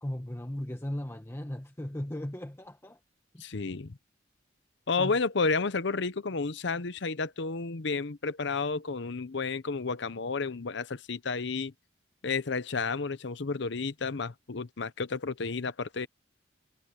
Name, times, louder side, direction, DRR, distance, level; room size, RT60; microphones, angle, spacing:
voice 1, 0.0-3.0 3.3-3.4 5.0-5.2, left 1 dB, 15° left, 1.3 m, -37 dB
voice 2, 3.4-4.0 4.9-11.7 12.2-16.1, left 4 dB, 70° left, 0.8 m, -31 dB
head